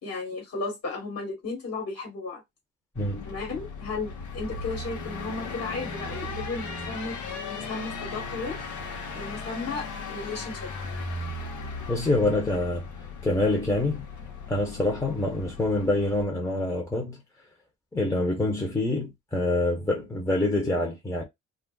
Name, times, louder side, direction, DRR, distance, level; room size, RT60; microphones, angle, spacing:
voice 1, 0.0-2.4 3.2-7.2 7.5-8.6 9.1-10.7, left 3 dB, 50° left, 1.4 m, -34 dB
sound 1, 2.9-16.2, left 3 dB, 75° left, 1.0 m, -37 dB
voice 2, 3.0-3.3 11.9-12.9 13.2-14.1 14.5-17.2 17.9-21.2, left 2 dB, 10° left, 0.9 m, -26 dB
2.4 x 2.0 x 3.8 m
cardioid pair, 90°, 30 cm